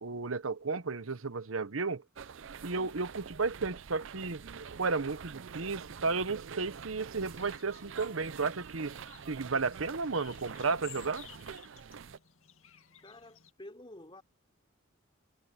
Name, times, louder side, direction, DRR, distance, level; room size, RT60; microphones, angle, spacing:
voice 1, 0.0-2.0 2.6-4.4 4.8-9.0 9.3-11.3, right 4 dB, 85° right, 1.0 m, -33 dB
sound 1, 2.2-12.2, right 6 dB, 65° right, 0.5 m, -46 dB
sound 2, 7.0-13.5, left 11 dB, 90° left, 2.2 m, -56 dB
voice 2, 13.0-14.2, left 1 dB, 25° left, 3.4 m, -50 dB
head